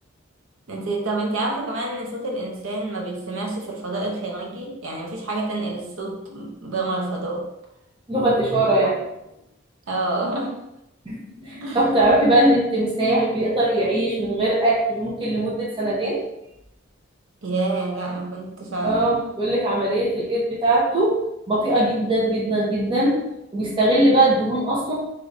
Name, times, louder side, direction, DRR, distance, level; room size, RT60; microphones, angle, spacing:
voice 1, 0.7-7.5 9.9-10.6 11.6-11.9 17.4-19.1, right 2 dB, 85° right, 0 dB, 0.7 m, -28 dB
voice 2, 8.1-9.0 11.1-11.2 11.4-16.2 18.8-21.2 21.5-23.1 23.5-24.9, right 1 dB, 25° right, -6 dB, 0.9 m, -20 dB
4.8 x 3.0 x 2.6 m, 0.86 s
head